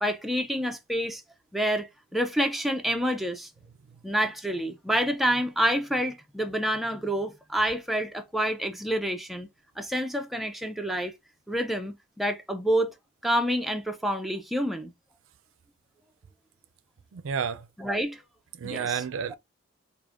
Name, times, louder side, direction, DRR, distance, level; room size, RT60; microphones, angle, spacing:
voice 1, 0.0-1.2 1.5-3.5 4.0-9.5 9.8-11.1 11.5-12.9 13.2-14.9 17.8-18.2 18.6-19.0, equal, ahead, 0.4 m, -28 dB
voice 2, 17.1-17.6 18.6-19.4, right 7 dB, 70° right, 0.4 m, -30 dB
4.8 x 2.5 x 2.4 m
head